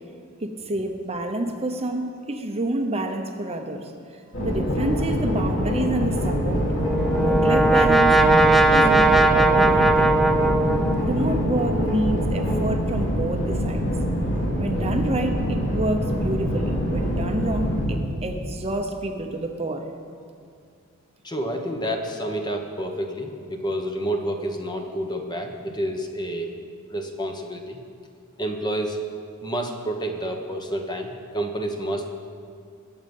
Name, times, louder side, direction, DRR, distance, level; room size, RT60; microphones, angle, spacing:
voice 1, 0.4-3.9 4.4-6.6 7.1-8.1 8.7-10.1 11.0-13.9 14.6-19.8, right 1 dB, 30° right, 4 dB, 0.9 m, -28 dB
sound 1, 4.3-18.0, equal, 60° left, 2.8 m, -24 dB
Brass instrument, 6.6-11.4, right 2 dB, ahead, 0.6 m, -19 dB
voice 2, 21.2-26.6 26.9-27.8 28.4-29.0 29.4-32.0, right 1 dB, 20° left, 3 dB, 1.1 m, -29 dB
21.0 x 8.0 x 5.5 m, 2.2 s
head